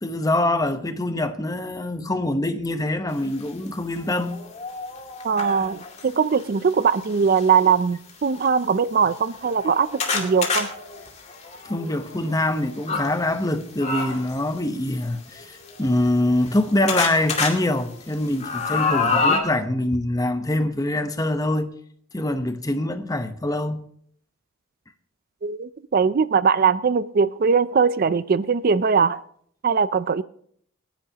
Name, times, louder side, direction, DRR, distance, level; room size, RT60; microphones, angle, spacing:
voice 1, 0.0-4.4 11.6-15.5 15.8-21.7 22.1-23.8, left 1 dB, 20° left, 0.9 m, -24 dB
sound 1, 3.5-3.6 4.1-6.1 7.0-7.4 8.1-8.2 8.5-8.6 9.2-13.1 13.8-14.4 15.4-16.6 16.9-17.5 17.9-19.4, left 4 dB, 35° left, 2.4 m, -27 dB
voice 2, 5.2-10.7 25.4-29.2 29.6-30.2, right 6 dB, 45° right, 0.4 m, -21 dB
27.0 x 10.5 x 2.9 m
head